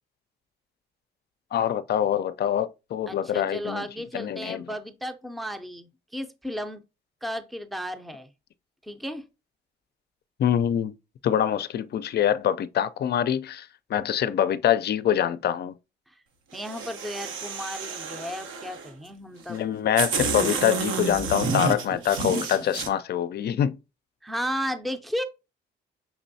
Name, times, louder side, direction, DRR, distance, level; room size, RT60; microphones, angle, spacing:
voice 1, 1.5-3.8 4.1-4.7 10.4-10.9 11.2-15.7 19.5-23.8, left 10 dB, 55° left, 0.5 m, -25 dB
voice 2, 3.1-6.8 7.2-8.3 8.8-9.2 16.1-16.2 16.5-19.6 24.2-25.2, equal, ahead, 0.6 m, -34 dB
sound 1, 16.5-18.9 19.5-19.6 20.0-22.9, right 4 dB, 80° right, 1.0 m, -30 dB
6.0 x 3.0 x 2.7 m
cardioid pair, 90°, 20 cm